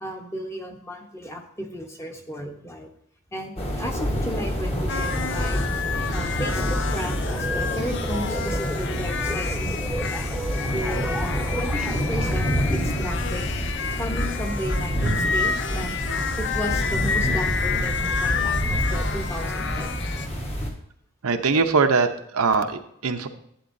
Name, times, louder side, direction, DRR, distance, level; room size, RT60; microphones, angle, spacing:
voice 1, 0.0-2.9 3.3-5.6 5.9-10.2 10.7-13.4 14.0-16.0 16.4-20.2, equal, 10° left, 3 dB, 0.9 m, -34 dB
sound 1, 3.6-20.7, equal, 30° left, 1.3 m, -27 dB
sound 2, 4.9-20.3, left 6 dB, 55° left, 0.5 m, -30 dB
sound 3, 7.2-12.4, right 2 dB, 5° right, 0.5 m, -35 dB
voice 2, 21.2-23.3, right 4 dB, 80° right, 6 dB, 0.8 m, -22 dB
11.5 x 8.4 x 2.6 m, 0.70 s
head